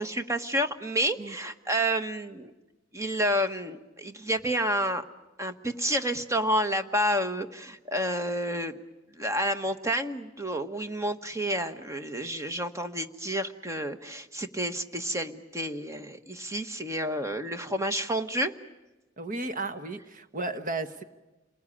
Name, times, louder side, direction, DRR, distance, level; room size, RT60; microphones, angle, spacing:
voice 1, 0.0-2.5 2.9-5.0 5.4-8.7 9.1-18.5, equal, 15° right, 8 dB, 1.2 m, -29 dB
voice 2, 19.2-21.0, right 2 dB, 45° right, 9 dB, 1.3 m, -34 dB
29.0 x 21.0 x 9.9 m, 1.1 s
head